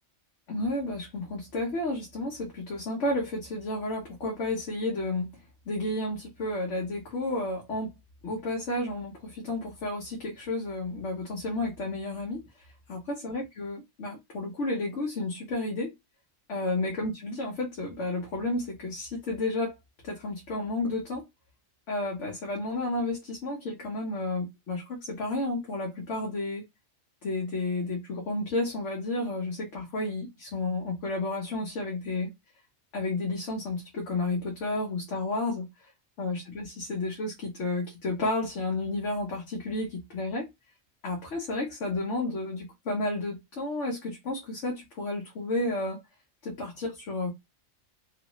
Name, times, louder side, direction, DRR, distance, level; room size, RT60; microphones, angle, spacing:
voice 1, 0.5-5.3 5.7-7.9 8.2-12.4 12.9-15.9 16.5-19.7 20.0-21.2 21.9-26.6 27.2-32.3 32.9-35.7 36.2-40.5 41.0-46.0 46.4-47.3, left 2 dB, 75° left, 1.2 m, -31 dB
3.1 x 2.5 x 3.0 m
omnidirectional pair, 1.2 m